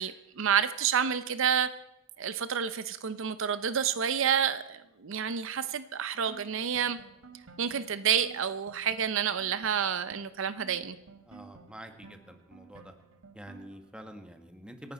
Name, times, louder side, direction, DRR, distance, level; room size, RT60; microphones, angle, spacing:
voice 1, 0.0-1.7 2.2-7.0 7.6-11.0, right 8 dB, 65° right, 13 dB, 0.6 m, -29 dB
sound 1, 6.3-13.9, right 4 dB, 85° right, 1.8 m, -53 dB
voice 2, 11.3-12.9 13.3-14.9, equal, 5° right, 5 dB, 1.4 m, -47 dB
26.5 x 11.0 x 4.1 m, 0.89 s
head